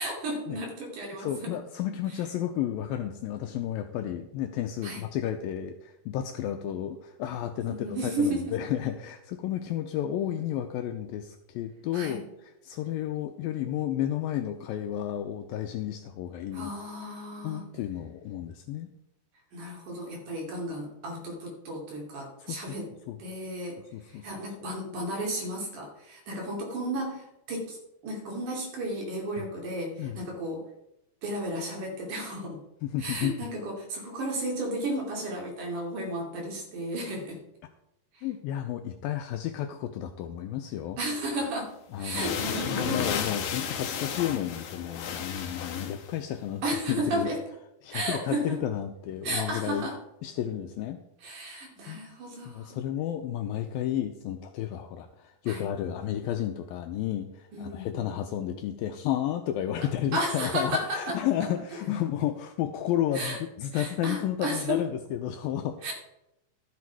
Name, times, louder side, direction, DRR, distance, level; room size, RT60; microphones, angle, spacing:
voice 1, 0.0-1.5 4.8-5.0 7.7-8.6 11.9-12.2 16.5-17.7 19.5-22.9 23.2-27.8 28.0-30.6 31.2-32.6 33.0-37.4 38.1-38.3 41.0-43.1 46.6-47.4 47.9-48.6 49.2-50.0 51.2-52.8 55.5-55.7 57.5-58.2 60.1-61.5 63.1-63.4 63.7-64.8 65.8-65.9, right 1 dB, 55° right, -1 dB, 3.9 m, -33 dB
voice 2, 1.2-12.2 12.6-16.7 17.4-18.9 22.4-22.6 23.1-23.2 23.9-24.3 29.4-29.5 30.0-30.2 32.8-33.5 38.2-41.0 41.9-46.6 46.9-47.3 47.8-49.9 50.2-51.4 51.9-52.0 52.5-65.8, left 11 dB, 85° left, 7 dB, 2.1 m, -32 dB
sound 1, 41.4-41.5 42.0-46.1, left 7 dB, 65° left, 2.2 m, -33 dB
13.0 x 8.4 x 4.6 m, 0.86 s
omnidirectional pair, 4.8 m